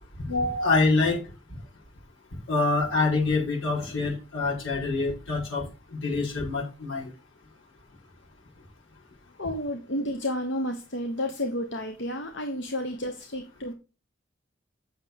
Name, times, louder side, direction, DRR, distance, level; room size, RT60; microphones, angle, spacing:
voice 1, 0.2-1.2 2.5-5.6 6.0-7.1, left 3 dB, 85° left, -4 dB, 5.1 m, -25 dB
voice 2, 9.4-13.7, left 1 dB, 60° left, 5 dB, 1.1 m, -31 dB
8.1 x 6.7 x 4.7 m, 0.31 s
head